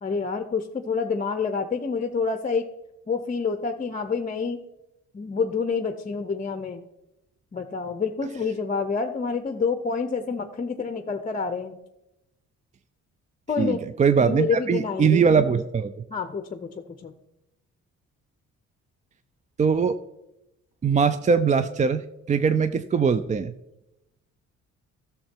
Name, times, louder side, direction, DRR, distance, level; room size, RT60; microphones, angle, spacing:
voice 1, 0.0-2.7 3.1-4.6 5.1-6.8 7.5-11.7 13.5-13.8 14.2-15.2 16.1-17.1, left 5 dB, 25° left, 8 dB, 0.7 m, -28 dB
voice 2, 13.6-15.9 19.6-20.0 20.8-23.5, right 6 dB, 25° right, 11 dB, 0.4 m, -21 dB
12.0 x 6.7 x 4.5 m, 0.91 s
cardioid pair, 90°, 30 cm